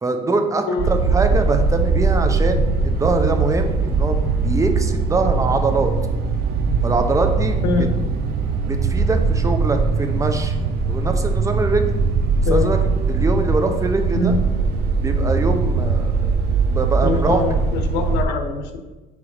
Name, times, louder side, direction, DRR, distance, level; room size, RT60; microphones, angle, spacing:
voice 1, 0.0-5.9 6.8-7.9 8.7-10.5 10.9-11.9 12.5-12.8 13.1-14.4 15.0-16.3 16.7-17.5, right 3 dB, 20° right, 5 dB, 0.8 m, -23 dB
sound 1, 0.8-18.2, right 4 dB, 70° right, 0.7 m, -20 dB
voice 2, 17.0-18.8, left 4 dB, 90° left, 5 dB, 1.0 m, -23 dB
5.0 x 4.7 x 5.6 m, 1.2 s
cardioid pair, 110°, 17 cm